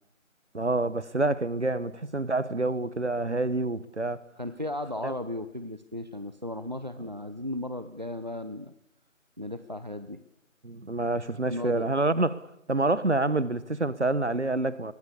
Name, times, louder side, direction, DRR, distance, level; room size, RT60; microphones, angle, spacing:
voice 1, 0.5-4.2 5.0-5.1 10.6-12.4 12.7-14.9, right 2 dB, 55° right, 1.4 m, -27 dB
voice 2, 4.4-8.7 9.4-10.2 11.5-11.9, left 1 dB, 35° right, 0.9 m, -35 dB
27.0 x 22.0 x 6.9 m
figure-of-eight pair, 175°, 40 cm